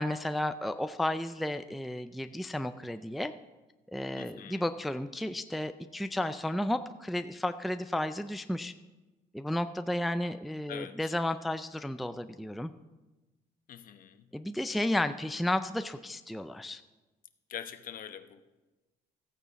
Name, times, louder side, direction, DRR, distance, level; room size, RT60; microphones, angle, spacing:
voice 1, 0.0-3.3 3.9-8.7 9.3-12.7 14.3-16.8, left 1 dB, ahead, 9 dB, 0.4 m, -33 dB
voice 2, 4.2-4.6 10.7-11.1 13.7-14.3 17.5-18.4, left 9 dB, 55° left, 9 dB, 0.9 m, -44 dB
14.5 x 8.9 x 4.1 m, 1.1 s
cardioid pair, 110°, 17 cm